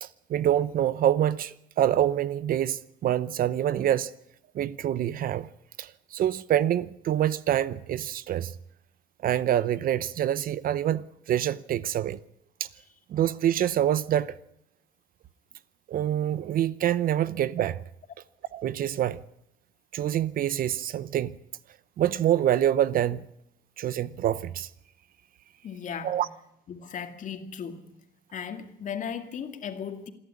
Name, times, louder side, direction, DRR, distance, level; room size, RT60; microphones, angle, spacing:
voice 1, 0.0-4.1 4.5-5.5 5.8-8.5 9.2-12.2 12.6-12.7 13.1-14.3 15.9-17.8 18.5-19.2 19.9-21.3 22.0-23.3 23.8-24.7 26.0-26.3, right 11 dB, 55° right, 0.8 m, -26 dB
voice 2, 25.6-26.2 26.7-27.9 28.3-30.1, left 7 dB, 50° left, 2.3 m, -36 dB
27.5 x 11.5 x 9.8 m
cardioid pair, 110°, 17 cm